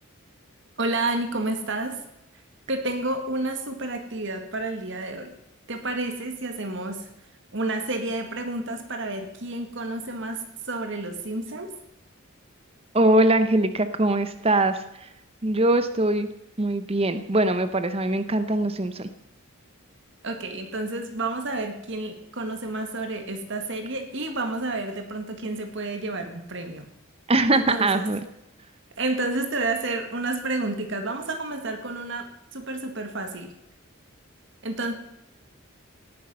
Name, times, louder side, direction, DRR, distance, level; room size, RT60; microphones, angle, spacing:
voice 1, 0.8-2.0 2.7-5.3 5.7-7.0 7.5-11.7 20.2-26.9 27.5-28.0 29.0-33.5 34.6-34.9, right 2 dB, 60° right, 6 dB, 1.9 m, -30 dB
voice 2, 12.9-15.1 15.4-16.3 16.6-19.1 27.3-28.2, right 2 dB, 30° right, 11 dB, 0.8 m, -22 dB
18.0 x 10.0 x 5.5 m, 0.86 s
head